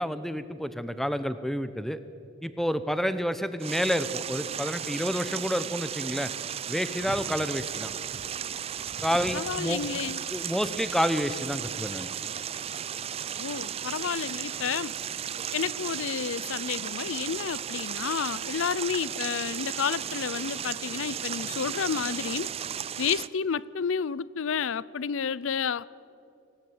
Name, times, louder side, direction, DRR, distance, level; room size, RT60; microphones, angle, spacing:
voice 1, 0.0-2.0 2.4-6.3 6.7-7.9 9.0-9.9 10.3-12.1, equal, ahead, 0.8 m, -29 dB
sound 1, 3.6-23.3, right 9 dB, 30° right, 0.4 m, -35 dB
voice 2, 9.3-10.2 13.4-14.9 15.5-22.5 23.0-25.9, left 6 dB, 90° left, 0.5 m, -30 dB
20.5 x 17.0 x 9.3 m
head